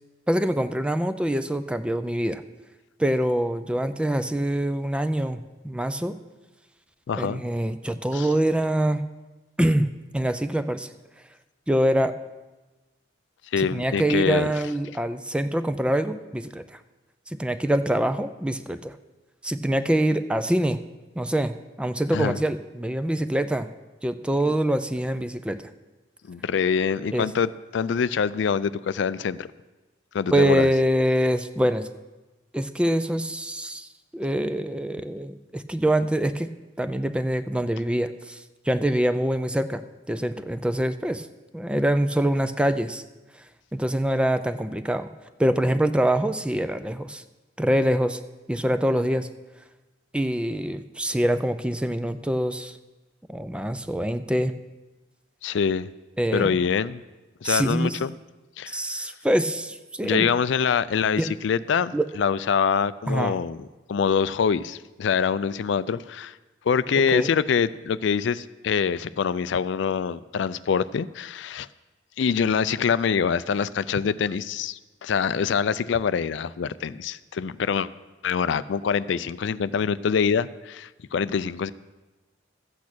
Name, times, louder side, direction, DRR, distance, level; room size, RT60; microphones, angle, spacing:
voice 1, 0.3-2.4 3.0-6.2 7.1-9.0 9.6-9.9 10.1-10.9 11.7-12.2 13.6-16.6 17.3-19.0 19.4-20.8 21.2-23.7 24.0-25.7 27.1-27.3 30.3-31.9 32.5-33.9 34.1-36.5 36.8-39.8 40.1-41.3 41.5-43.0 43.7-45.1 45.4-47.2 47.6-48.2 48.5-49.3 50.1-52.7 53.3-54.5 56.2-56.6 57.4-58.0 58.7-60.3 61.2-61.3 61.9-62.1 63.1-63.4 67.1-67.3, right 1 dB, 5° right, 11 dB, 0.4 m, -24 dB
voice 2, 7.1-7.4 8.1-8.3 13.5-14.5 22.1-22.4 26.3-29.5 30.1-30.7 55.4-55.9 56.3-57.0 57.4-58.1 58.6-59.1 60.0-63.6 63.9-66.4 66.7-71.7 72.2-77.9 78.2-81.7, left 6 dB, 65° left, 16 dB, 0.4 m, -25 dB
13.5 x 8.5 x 6.1 m, 1.1 s
head